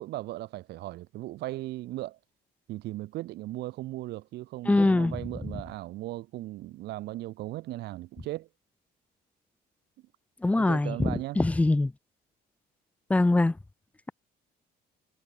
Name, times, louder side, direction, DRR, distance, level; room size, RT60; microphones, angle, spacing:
voice 1, 0.0-2.2 2.7-8.5 10.5-11.4, right 17 dB, 80° right, 2.1 m, -37 dB
voice 2, 4.7-5.1 10.4-11.9 13.1-13.5, left 2 dB, 10° left, 0.4 m, -23 dB
cardioid pair, 110°, 17 cm